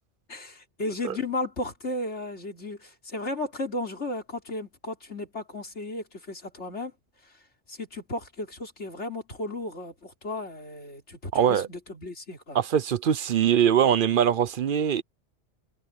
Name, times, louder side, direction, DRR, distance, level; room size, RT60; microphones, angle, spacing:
voice 1, 0.3-6.9 7.7-12.6, left 2 dB, 80° left, 3.8 m, -34 dB
voice 2, 11.3-11.7 12.5-15.0, right 9 dB, 55° right, 0.7 m, -22 dB
omnidirectional pair, 1.2 m